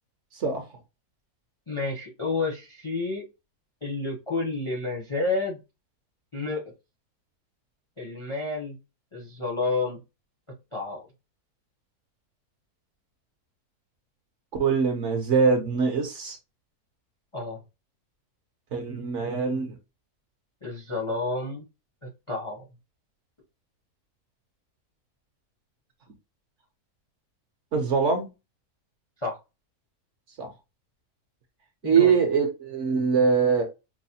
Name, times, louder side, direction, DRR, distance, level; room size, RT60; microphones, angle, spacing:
voice 1, 0.3-0.6 14.6-16.4 18.7-19.7 27.7-28.3 30.4-30.5 31.8-33.6, right 5 dB, 60° right, 0.9 m, -23 dB
voice 2, 1.7-3.2 3.8-5.6 6.3-6.7 8.0-8.8 9.1-10.0 10.7-11.1 17.3-17.6 20.6-21.6 22.0-22.7 29.2-29.4 31.8-32.2, left 3 dB, 35° left, 0.5 m, -30 dB
4.7 x 2.0 x 2.7 m
omnidirectional pair, 1.7 m